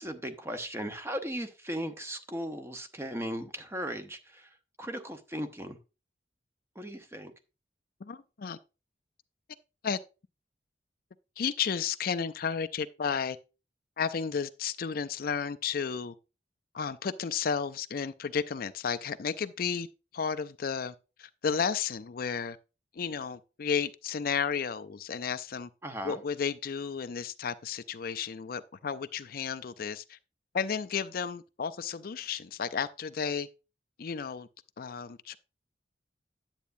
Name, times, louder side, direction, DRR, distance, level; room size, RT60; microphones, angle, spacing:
voice 1, 0.0-5.8 6.7-7.3 25.8-26.2, equal, 15° right, 0.9 m, -37 dB
voice 2, 8.0-8.6 9.8-10.0 11.4-13.4 14.0-16.1 16.7-19.9 20.1-22.6 22.9-25.7 26.0-30.2 30.5-33.5 34.0-34.5 34.8-35.4, left 6 dB, 55° left, 0.4 m, -33 dB
10.5 x 8.2 x 2.6 m
head